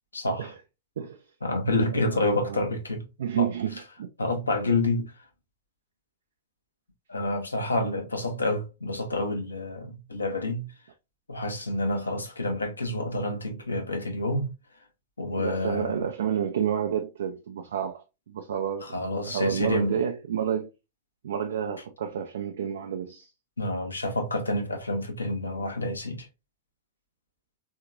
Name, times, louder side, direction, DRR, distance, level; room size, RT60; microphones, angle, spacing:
voice 1, 0.1-0.5 1.4-3.1 3.4-5.1 7.1-10.7 11.3-14.5 15.2-16.1 18.8-20.0 23.6-26.3, left 2 dB, 85° left, 0.8 m, -28 dB
voice 2, 2.0-2.7 3.2-4.1 15.3-18.9 19.3-20.7 21.2-23.3, right 8 dB, 65° right, 0.4 m, -30 dB
3.6 x 2.8 x 2.3 m
figure-of-eight pair, 90°, 0 cm